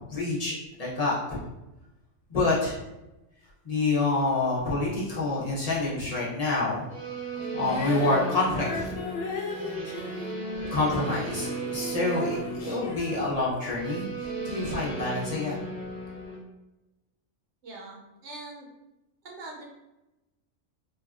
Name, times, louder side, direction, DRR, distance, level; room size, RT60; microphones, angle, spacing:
voice 1, 0.1-1.4 2.3-2.8 3.6-9.0 10.7-15.6, left 2 dB, 40° left, -7 dB, 0.6 m, -28 dB
sound 1, 6.9-16.4, right 2 dB, 40° right, 0.8 m, -36 dB
Female singing, 7.6-14.0 14.7-14.8, left 3 dB, 75° left, 0.9 m, -37 dB
voice 2, 17.6-18.7 19.2-19.6, right 2 dB, 70° right, -1 dB, 0.9 m, -42 dB
3.3 x 2.3 x 2.3 m, 0.97 s
omnidirectional pair, 1.3 m